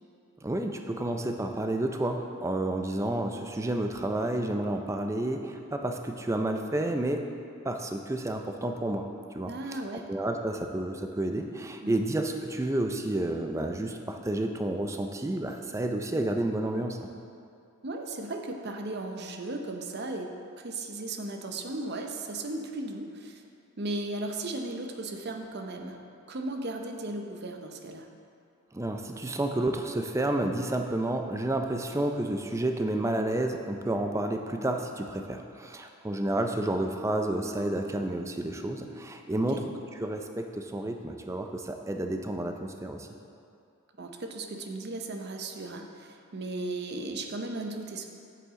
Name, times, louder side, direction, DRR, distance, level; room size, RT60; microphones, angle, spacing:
voice 1, 0.4-7.3 7.6-9.1 9.3-17.1 28.7-39.6 39.9-43.1, right 1 dB, 15° right, 4 dB, 0.4 m, -30 dB
voice 2, 9.5-10.1 11.8-12.0 17.8-23.4 23.8-26.0 26.3-28.1 39.3-39.6 44.0-48.1, right 2 dB, 50° right, 4 dB, 0.7 m, -36 dB
8.0 x 7.8 x 3.7 m, 2.5 s
head